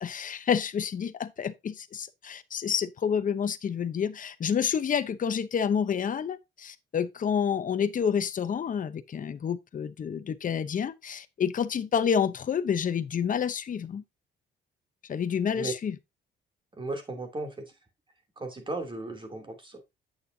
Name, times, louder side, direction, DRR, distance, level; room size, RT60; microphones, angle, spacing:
voice 1, 0.0-14.0 15.1-16.0, left 7 dB, 40° left, 0.8 m, -29 dB
voice 2, 16.8-17.7 18.4-19.8, right 2 dB, 25° right, 2.8 m, -35 dB
8.9 x 6.5 x 2.7 m
cardioid pair, 90°, 20 cm